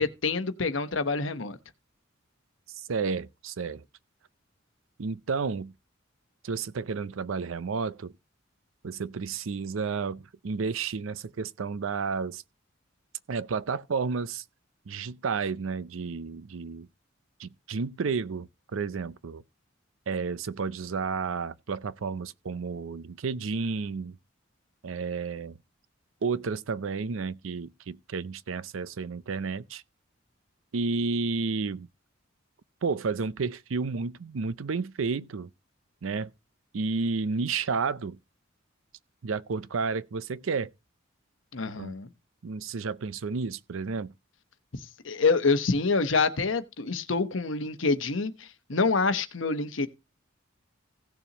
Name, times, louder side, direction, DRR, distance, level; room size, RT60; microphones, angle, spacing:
voice 1, 0.0-1.6 41.5-42.1 45.0-49.9, left 4 dB, 70° left, 1.0 m, -26 dB
voice 2, 2.7-3.8 5.0-5.7 6.4-8.1 8.8-12.4 13.3-14.4 14.9-16.9 17.4-19.4 20.1-24.2 24.8-25.6 26.2-29.8 30.7-31.9 32.8-35.5 36.0-36.3 36.7-38.2 39.2-40.7 41.8-42.0 42.4-44.1, right 4 dB, 80° right, 0.5 m, -31 dB
16.5 x 6.9 x 2.9 m
head